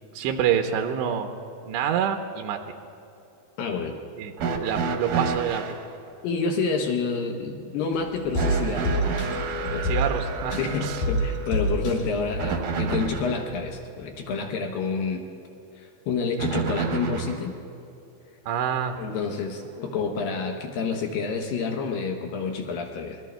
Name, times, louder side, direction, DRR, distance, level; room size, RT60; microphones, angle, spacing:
voice 1, 0.1-1.3 1.6-2.6 4.2-4.3 4.6-5.6 9.8-11.0 18.5-19.0, right 8 dB, 85° right, 4 dB, 2.9 m, -27 dB
voice 2, 3.6-4.0 6.2-9.0 9.6-9.9 10.5-15.3 15.8-17.5 19.0-23.2, left 4 dB, 75° left, 3 dB, 2.1 m, -29 dB
sound 1, 4.4-5.8 8.3-13.4 16.4-17.5 18.7-18.8 19.8-19.9, right 5 dB, 70° right, 2.0 m, -30 dB
sound 2, 7.9-13.1 13.5-13.6, right 1 dB, 60° left, 6.0 m, -28 dB
25.5 x 21.5 x 2.2 m, 2.8 s
omnidirectional pair, 5.1 m